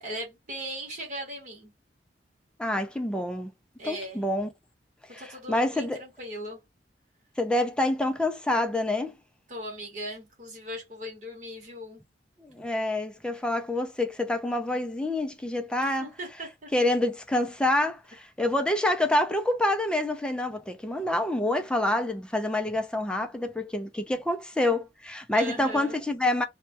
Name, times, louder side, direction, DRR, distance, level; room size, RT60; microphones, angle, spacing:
voice 1, 0.0-1.7 3.8-4.2 5.2-6.6 9.5-12.0 15.8-16.7 25.3-26.1, equal, 45° right, 1.0 m, -38 dB
voice 2, 2.6-3.5 3.8-4.5 5.1-6.0 7.4-9.2 12.4-16.1 16.7-26.4, left 1 dB, 5° left, 0.3 m, -27 dB
2.2 x 2.1 x 2.7 m
head